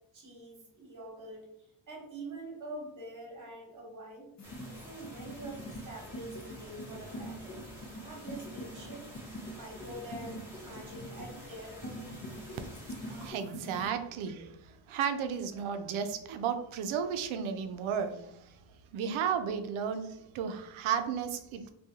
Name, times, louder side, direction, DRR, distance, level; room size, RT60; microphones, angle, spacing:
voice 1, 0.1-1.5 1.9-4.3 4.8-7.6 8.0-9.1 9.5-12.1, right 2 dB, 40° right, -1 dB, 1.1 m, -45 dB
sound 1, 4.4-13.9, equal, 35° left, 0.6 m, -45 dB
sound 2, 4.4-13.3, equal, 5° right, 0.8 m, -50 dB
voice 2, 13.0-18.5 18.9-21.7, right 7 dB, 80° right, 8 dB, 0.5 m, -34 dB
3.6 x 2.3 x 2.7 m, 0.77 s
wide cardioid pair, 170°, 47 cm